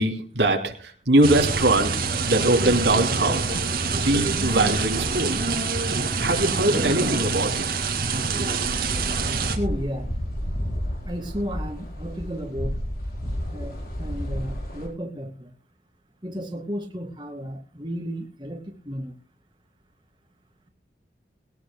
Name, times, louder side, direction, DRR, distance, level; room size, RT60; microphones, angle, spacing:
voice 1, 0.0-5.4 6.2-7.8, right 2 dB, 85° right, 3 dB, 3.0 m, -22 dB
sound 1, 1.2-9.6, right 4 dB, 55° right, 2.4 m, -25 dB
sound 2, 8.6-14.9, equal, 55° left, 4.7 m, -31 dB
voice 2, 9.6-10.1 11.0-12.8 13.5-15.5 16.2-19.1, equal, 25° right, 3 dB, 2.3 m, -33 dB
21.5 x 18.0 x 2.2 m, 0.35 s
head